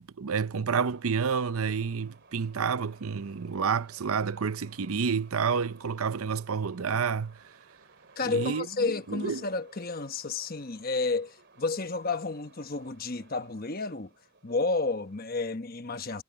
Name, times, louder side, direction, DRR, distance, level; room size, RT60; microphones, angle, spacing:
voice 1, 0.2-7.4 8.2-8.7 9.1-9.4, right 6 dB, 75° right, 0.6 m, -29 dB
sound 1, 0.9-15.2, right 3 dB, 50° right, 3.9 m, -58 dB
voice 2, 8.2-14.1 14.4-16.2, left 3 dB, 40° left, 1.1 m, -31 dB
head